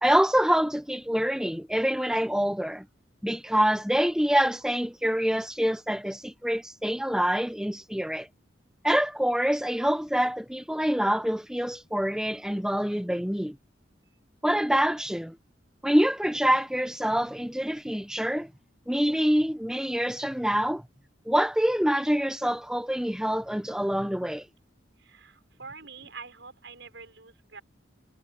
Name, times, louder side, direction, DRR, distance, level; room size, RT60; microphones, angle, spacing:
voice 1, 0.0-2.9 3.2-8.3 8.8-13.6 14.4-15.4 15.8-18.5 18.9-20.8 21.3-24.5, equal, 5° right, 1.0 m, -26 dB
voice 2, 25.0-27.6, right 5 dB, 75° right, 5.9 m, -46 dB
head